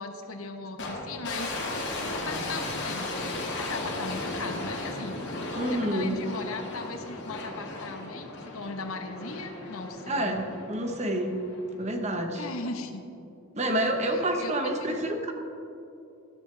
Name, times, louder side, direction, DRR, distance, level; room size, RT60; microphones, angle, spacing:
voice 1, 0.0-1.7 2.1-5.2 5.7-10.3 12.3-13.0 14.1-14.9, left 3 dB, 80° left, 6 dB, 1.0 m, -38 dB
sound 1, 0.8-12.0, left 2 dB, 55° left, 1.9 m, -36 dB
voice 2, 5.6-6.2 10.1-11.4 11.8-12.4 13.6-15.3, right 1 dB, 30° right, 4 dB, 1.0 m, -28 dB
13.5 x 12.0 x 3.3 m, 2.7 s
head